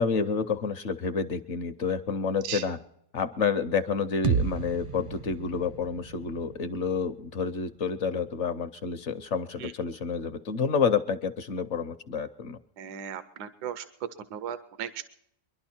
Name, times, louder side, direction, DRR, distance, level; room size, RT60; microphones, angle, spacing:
voice 1, 0.0-2.8 3.1-12.6, left 5 dB, 60° left, 10 dB, 0.8 m, -29 dB
sound 1, 4.2-8.1, right 6 dB, 55° right, 0.5 m, -33 dB
voice 2, 12.8-13.8 14.3-15.0, right 9 dB, 85° right, 11 dB, 1.3 m, -36 dB
24.0 x 11.5 x 4.4 m, 0.73 s
omnidirectional pair, 1.7 m